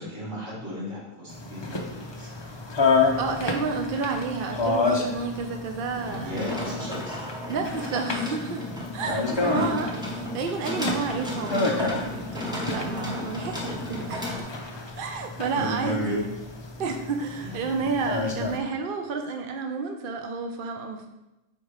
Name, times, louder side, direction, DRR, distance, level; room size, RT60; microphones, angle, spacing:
voice 1, 0.0-2.3 6.2-7.2 9.4-9.7 15.5-16.2 17.4-17.8, equal, 70° right, -6 dB, 2.7 m, -33 dB
sound 1, 1.3-18.6, left 3 dB, 35° left, 0.5 m, -30 dB
voice 2, 3.2-6.8 7.5-9.9 10.3-14.5 15.0-16.3 16.8-21.1, right 4 dB, 55° right, 4 dB, 0.7 m, -31 dB
sound 2, 5.9-14.4, left 1 dB, 5° right, 0.9 m, -34 dB
5.1 x 4.4 x 4.8 m, 0.98 s
omnidirectional pair, 1.3 m